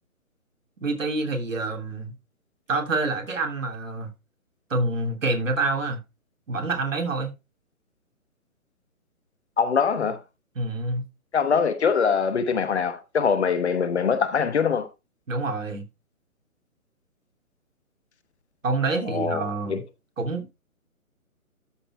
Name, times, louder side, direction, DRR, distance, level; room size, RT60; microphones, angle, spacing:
voice 1, 0.8-2.1 2.7-4.1 4.7-6.0 6.5-7.3 10.5-11.0 15.3-15.8 18.6-19.8 20.2-20.5, right 3 dB, 60° right, 3.0 m, -27 dB
voice 2, 9.6-10.2 11.3-14.9 19.1-19.8, left 6 dB, 50° left, 1.2 m, -23 dB
13.0 x 4.4 x 4.3 m
figure-of-eight pair, 145°, 43 cm